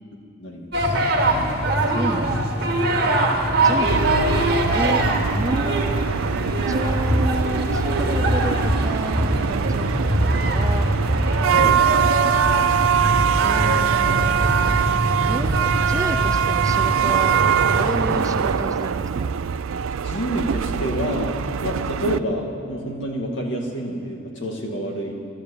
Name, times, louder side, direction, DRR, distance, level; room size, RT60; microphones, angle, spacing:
voice 1, 0.4-1.0 11.5-11.8 20.0-25.1, equal, 60° left, 0 dB, 2.4 m, -28 dB
sound 1, 0.7-18.5, right 1 dB, 50° right, 2.1 m, -23 dB
voice 2, 1.9-2.9 3.6-4.1 4.7-5.0 5.3-6.1 6.7-10.9 13.4-14.7 15.3-17.4 17.7-19.3, right 1 dB, 15° right, 8 dB, 0.4 m, -31 dB
sound 2, 3.9-22.2, right 7 dB, 75° right, 0.4 m, -23 dB
12.5 x 12.5 x 8.7 m, 2.5 s
head